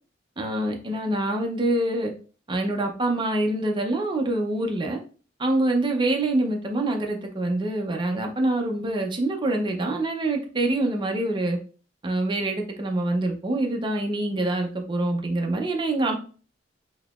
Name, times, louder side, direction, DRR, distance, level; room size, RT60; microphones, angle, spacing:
voice 1, 0.4-2.1 2.5-5.0 5.4-11.6 12.0-16.2, right 2 dB, 25° right, 2 dB, 0.6 m, -25 dB
3.9 x 2.8 x 2.4 m, 0.39 s
head